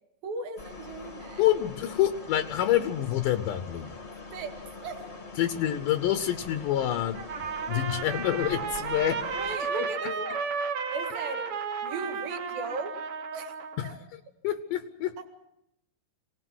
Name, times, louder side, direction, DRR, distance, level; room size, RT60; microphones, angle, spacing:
voice 1, 0.2-1.4 4.3-5.0 9.3-10.4 10.9-11.5 11.8-13.0 13.3-13.5 13.8-14.0 15.2-15.3, right 3 dB, 80° right, 6 dB, 3.8 m, -37 dB
sound 1, 0.6-9.6, left 3 dB, 30° left, 1.2 m, -44 dB
voice 2, 1.4-3.9 5.4-7.2 7.7-9.3 9.6-9.9 13.8-14.0 14.4-15.3, left 12 dB, 75° left, 10 dB, 2.3 m, -27 dB
Trumpet, 7.1-13.9, right 5 dB, 55° right, 1.6 m, -33 dB
25.0 x 19.0 x 6.3 m, 0.83 s
omnidirectional pair, 4.1 m